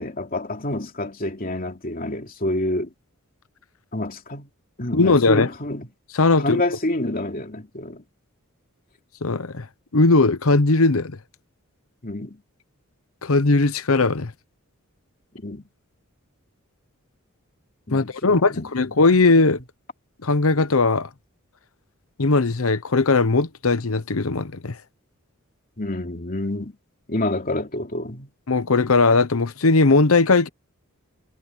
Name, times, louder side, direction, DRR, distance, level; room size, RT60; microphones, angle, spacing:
voice 1, 0.0-2.9 3.9-4.5 4.8-5.9 6.4-8.0 12.0-12.4 15.4-15.7 17.9-18.7 25.8-26.7 27.1-28.3, left 1 dB, 40° left, 2.9 m, -28 dB
voice 2, 4.9-5.5 6.1-6.6 9.2-9.7 9.9-11.2 13.2-14.3 17.9-19.6 20.2-21.1 22.2-24.8 28.5-30.5, left 3 dB, 75° left, 1.0 m, -18 dB
head